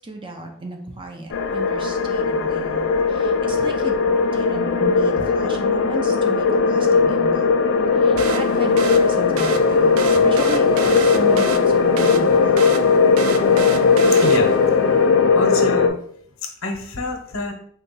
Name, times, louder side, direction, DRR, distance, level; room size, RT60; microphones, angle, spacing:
voice 1, 0.0-4.0 4.3-7.5 7.9-12.9, right 2 dB, 25° right, 3 dB, 0.6 m, -34 dB
sound 1, 1.3-15.9, left 5 dB, 65° left, 0.4 m, -18 dB
sound 2, 8.2-14.8, right 5 dB, 85° right, 0.4 m, -31 dB
voice 2, 14.9-16.0 16.6-17.5, left 2 dB, 85° left, 2 dB, 0.9 m, -28 dB
3.9 x 2.3 x 3.9 m, 0.63 s
head